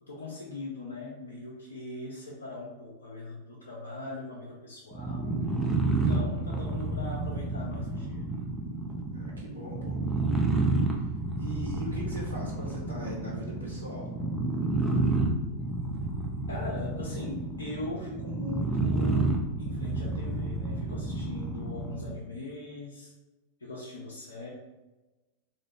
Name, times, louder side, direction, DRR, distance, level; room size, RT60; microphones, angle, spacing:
voice 1, 0.0-5.3 5.9-8.2 16.5-19.3 19.6-23.1 23.6-24.5, left 2 dB, 70° left, -3 dB, 0.5 m, -40 dB
sound 1, 4.9-22.2, right 2 dB, ahead, 0.6 m, -30 dB
voice 2, 9.1-10.0 10.3-11.1 11.4-14.1, right 1 dB, 85° right, -5 dB, 1.1 m, -40 dB
3.7 x 2.5 x 3.2 m, 1.1 s
figure-of-eight pair, 90°, 0 cm